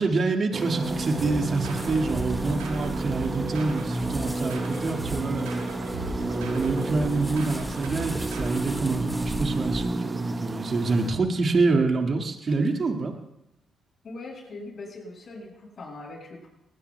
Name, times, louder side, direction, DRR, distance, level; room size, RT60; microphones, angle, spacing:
voice 1, 0.0-5.7 6.2-13.2, right 3 dB, 50° right, 3 dB, 2.0 m, -26 dB
sound 1, 0.5-11.1, right 2 dB, 30° right, 1.1 m, -31 dB
sound 2, 0.8-9.9, equal, 5° right, 2.3 m, -39 dB
sound 3, 1.2-8.8, right 3 dB, 90° right, 2.7 m, -38 dB
voice 2, 14.0-16.5, left 2 dB, 55° left, -2 dB, 7.3 m, -41 dB
21.5 x 19.5 x 2.3 m, 0.90 s
hypercardioid pair, 50°, 0 cm